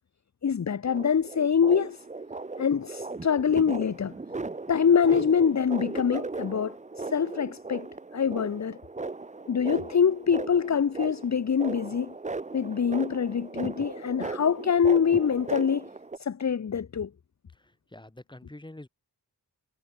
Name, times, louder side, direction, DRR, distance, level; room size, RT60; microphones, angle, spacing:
voice 1, 0.4-2.0 2.6-4.1 4.7-7.9 8.1-8.8 9.5-12.1 12.5-15.9 16.2-17.1, left 7 dB, 45° left, 1.0 m, -25 dB
sound 1, 0.9-16.2, right 3 dB, 20° right, 0.9 m, -38 dB
voice 2, 17.5-18.9, left 1 dB, 10° left, 3.5 m, -46 dB
wide cardioid pair, 125°, 40 cm